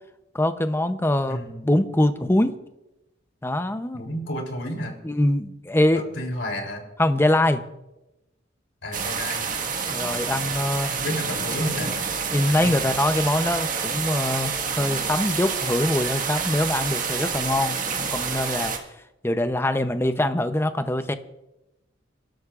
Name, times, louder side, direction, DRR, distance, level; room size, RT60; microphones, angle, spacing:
voice 1, 0.3-1.4 1.6-2.5 3.4-4.0 5.0-6.0 7.0-7.6 9.9-10.9 12.3-18.7 19.2-21.1, left 1 dB, 15° left, 9 dB, 0.7 m, -23 dB
voice 2, 1.3-1.7 3.9-5.0 5.9-6.8 8.8-9.5 10.9-12.0 12.6-12.7, equal, 85° left, 2 dB, 3.3 m, -31 dB
sound 1, 8.9-18.8, right 5 dB, 45° right, 1.7 m, -28 dB
29.5 x 13.0 x 2.5 m, 0.96 s
head